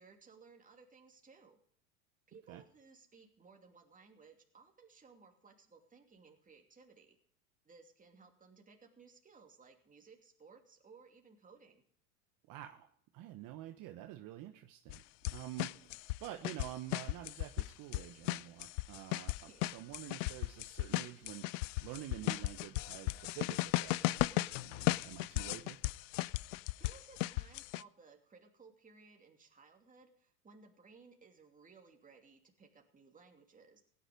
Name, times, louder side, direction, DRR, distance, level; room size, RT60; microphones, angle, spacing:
voice 1, 0.0-1.6 2.3-7.2 7.6-11.8 15.7-15.9 19.4-19.7 26.8-33.8, right 4 dB, 15° right, 2 dB, 2.8 m, -60 dB
voice 2, 12.5-12.9 13.1-15.0 15.3-25.8, right 14 dB, 45° right, 6 dB, 1.3 m, -48 dB
sound 1, 14.9-15.0 15.2-17.7 17.9-27.8, left 20 dB, 55° left, 0.5 m, -36 dB
17.0 x 10.0 x 5.2 m, 0.62 s
hypercardioid pair, 90°, 45 cm